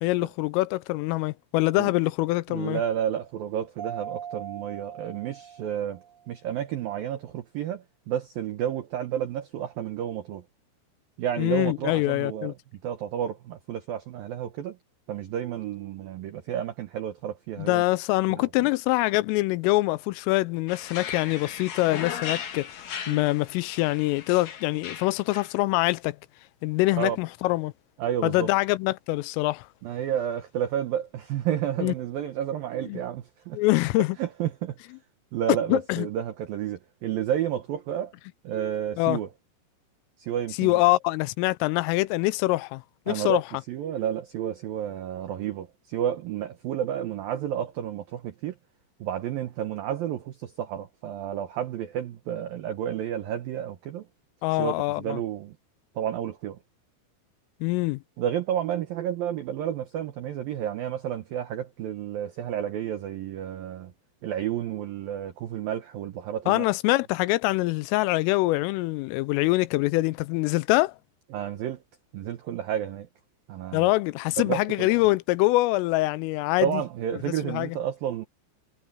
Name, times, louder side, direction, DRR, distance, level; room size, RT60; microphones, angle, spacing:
voice 1, 0.0-2.8 11.4-12.5 17.6-26.2 26.6-27.7 28.2-29.7 31.8-31.9 32.8-33.0 33.5-34.2 35.7-36.1 39.0-39.2 40.6-43.4 54.4-55.2 57.6-58.0 66.5-70.9 73.7-76.8 77.3-77.8, left 20 dB, 90° left, 3.3 m, -24 dB
voice 2, 2.5-6.0 6.3-10.4 11.2-12.5 12.8-14.8 15.1-17.8 18.3-18.5 23.1-23.2 27.0-27.2 28.0-28.5 29.8-33.6 34.2-34.8 35.3-38.1 38.4-39.3 40.2-40.8 43.1-43.4 43.7-48.5 49.0-54.1 54.6-55.6 56.0-56.6 58.2-63.9 64.2-66.6 71.3-71.8 72.1-73.1 73.5-73.9 74.4-74.9 76.6-78.2, right 10 dB, 75° right, 2.1 m, -31 dB
Mallet percussion, 3.8-6.3, right 9 dB, 60° right, 3.7 m, -40 dB
sound 1, 20.7-25.5, left 8 dB, 60° left, 2.0 m, -37 dB
omnidirectional pair, 5.7 m